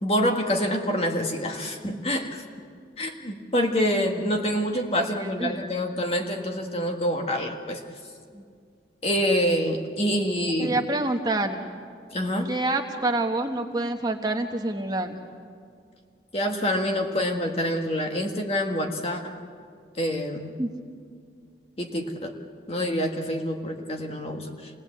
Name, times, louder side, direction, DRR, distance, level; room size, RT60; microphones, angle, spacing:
voice 1, 0.0-2.4 3.0-7.8 9.0-10.8 12.1-12.5 16.3-19.4 20.0-20.6 21.8-22.3 22.7-24.7, equal, 35° left, 3 dB, 1.7 m, -26 dB
voice 2, 5.2-5.6 8.3-8.4 10.6-11.6 12.4-15.2 20.6-20.7, right 2 dB, 20° right, 3 dB, 1.2 m, -27 dB
27.5 x 18.0 x 8.4 m, 2.2 s
head